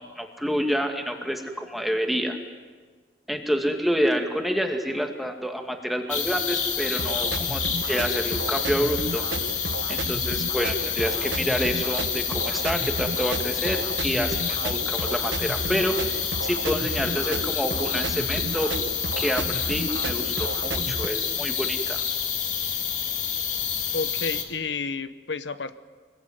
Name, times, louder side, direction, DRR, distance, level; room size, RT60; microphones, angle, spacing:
voice 1, 0.0-2.4 3.3-9.2 9.9-18.7 19.2-22.0, equal, ahead, 4 dB, 2.4 m, -28 dB
sound 1, 6.1-24.4, left 8 dB, 45° left, 2.7 m, -28 dB
sound 2, 7.0-21.1, right 3 dB, 85° right, 1.2 m, -33 dB
voice 2, 23.9-25.7, left 4 dB, 80° left, 12 dB, 1.0 m, -31 dB
25.5 x 21.5 x 9.5 m, 1.4 s
head